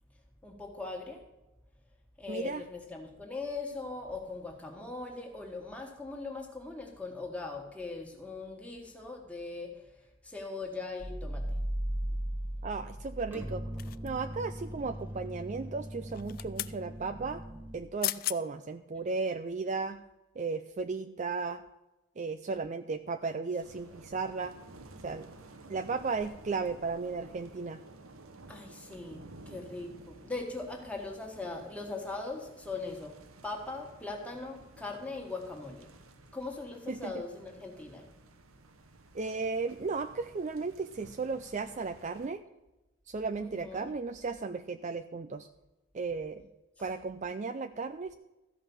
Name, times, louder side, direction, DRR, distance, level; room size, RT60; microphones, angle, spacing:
voice 1, 0.4-1.2 2.2-9.9 10.2-11.6 28.5-35.9 36.3-38.1 43.4-43.9, left 3 dB, 5° left, 1 dB, 1.8 m, -40 dB
voice 2, 2.3-2.6 12.6-13.6 14.0-17.4 17.7-20.0 20.4-21.6 22.2-24.5 25.0-25.3 25.7-27.8 36.9-37.2 39.1-42.4 43.1-45.5 45.9-46.4 46.8-48.1, right 4 dB, 35° right, 10 dB, 0.4 m, -35 dB
sound 1, 11.0-17.8, equal, 10° right, 1.3 m, -38 dB
sound 2, 13.8-14.4 16.1-16.8 17.7-17.8 18.0-18.4 18.9-19.1, left 16 dB, 45° left, 0.3 m, -36 dB
sound 3, 23.6-42.3, right 2 dB, 85° right, 1.1 m, -54 dB
13.5 x 5.5 x 7.1 m, 1.0 s
head